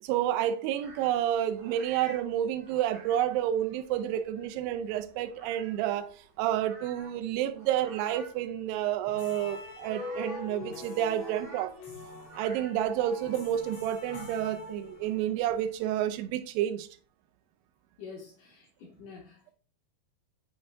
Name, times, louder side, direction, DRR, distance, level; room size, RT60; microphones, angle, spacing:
voice 1, 0.0-6.1 6.4-11.7 12.4-16.9, right 11 dB, 80° right, 2.2 m, -30 dB
sound 1, 0.8-16.3, right 2 dB, 35° right, 2.6 m, -52 dB
sound 2, 9.1-15.3, left 3 dB, 50° left, 3.0 m, -43 dB
voice 2, 18.0-19.5, left 5 dB, 70° left, 2.3 m, -47 dB
7.0 x 5.4 x 2.7 m
omnidirectional pair, 4.4 m